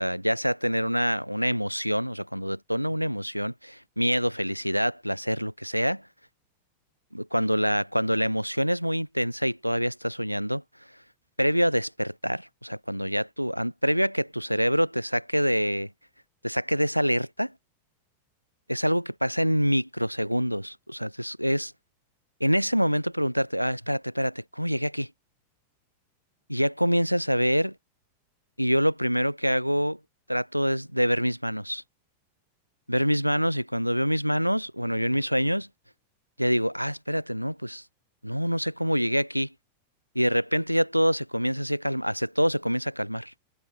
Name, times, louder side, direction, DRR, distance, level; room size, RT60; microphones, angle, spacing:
voice 1, 0.0-6.0 7.1-10.6 11.4-15.9 16.4-17.5 18.7-21.7 22.4-25.1 26.5-27.7 28.6-30.0 30.3-31.8 32.9-35.7 36.4-37.8 38.2-39.5 40.2-43.3, equal, 90° right, 0.4 m, -26 dB
figure-of-eight pair, 90°, 0 cm